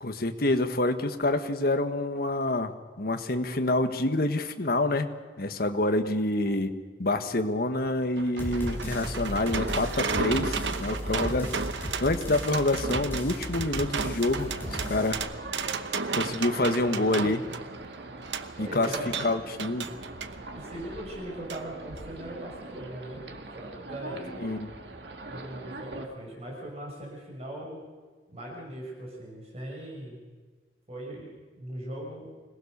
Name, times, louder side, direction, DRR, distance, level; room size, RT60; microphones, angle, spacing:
voice 1, 0.0-5.1 5.4-6.7 7.0-15.2 16.1-17.4 18.6-18.9 19.2-19.9 24.4-24.7, left 2 dB, 60° left, 8 dB, 1.5 m, -27 dB
sound 1, 7.8-20.4 21.5-21.6 22.0-22.1, right 5 dB, 90° right, 1.1 m, -34 dB
sound 2, 8.4-15.2, equal, 10° left, 6.1 m, -36 dB
sound 3, 14.4-26.1, right 2 dB, 70° right, 2.1 m, -42 dB
voice 2, 18.6-19.1 20.5-23.2 23.5-24.4 25.2-27.8 28.3-30.2 30.9-31.3 31.6-32.3, right 1 dB, 35° right, -1 dB, 6.6 m, -39 dB
25.5 x 18.5 x 6.8 m, 1.4 s
head